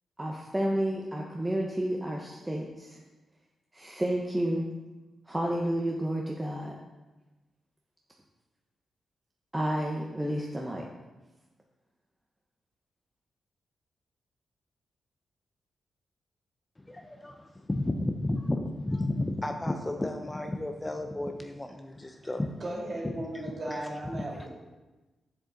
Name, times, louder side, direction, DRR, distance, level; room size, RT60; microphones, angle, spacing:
voice 1, 0.2-3.0 3.7-4.7 5.3-6.7 9.5-10.8, right 1 dB, 10° right, 0.9 m, -30 dB
voice 2, 16.8-22.6 23.0-23.1 23.7-23.9 24.1-24.2, left 1 dB, 15° left, 0.5 m, -32 dB
voice 3, 22.6-24.5, right 1 dB, 40° right, 2.8 m, -36 dB
7.5 x 6.9 x 3.9 m
cardioid pair, 90°, 0 cm